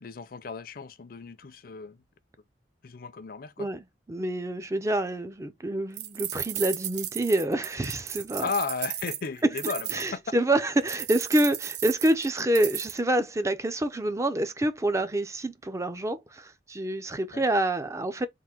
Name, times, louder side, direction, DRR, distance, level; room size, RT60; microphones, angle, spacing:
voice 1, 0.0-2.0 2.8-3.7 8.4-10.2 17.3-17.4, left 4 dB, 55° left, 0.5 m, -34 dB
voice 2, 4.1-8.5 9.9-18.3, right 1 dB, 15° right, 0.4 m, -27 dB
sound 1, 6.0-10.1 10.9-13.0, right 12 dB, 70° right, 0.7 m, -35 dB
3.7 x 2.6 x 4.3 m
head